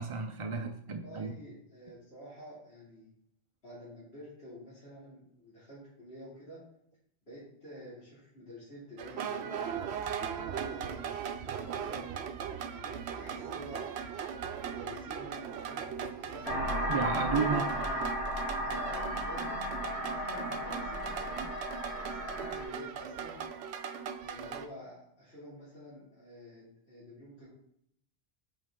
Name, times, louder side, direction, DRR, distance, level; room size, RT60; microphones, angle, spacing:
voice 1, 0.0-1.3 16.9-17.6, right 5 dB, 40° right, 4 dB, 0.5 m, -32 dB
voice 2, 0.9-3.1 3.6-6.6 7.3-12.1 12.7-13.9 14.5-16.5 17.4-17.9 18.6-19.8 20.1-21.6 21.9-23.4 24.2-27.5, equal, 75° left, -11 dB, 2.8 m, -49 dB
sound 1, 9.0-24.7, right 8 dB, 85° right, 0.9 m, -39 dB
sound 2, 16.4-22.6, equal, 90° left, 2.1 m, -35 dB
7.9 x 4.7 x 3.7 m, 0.73 s
omnidirectional pair, 1.1 m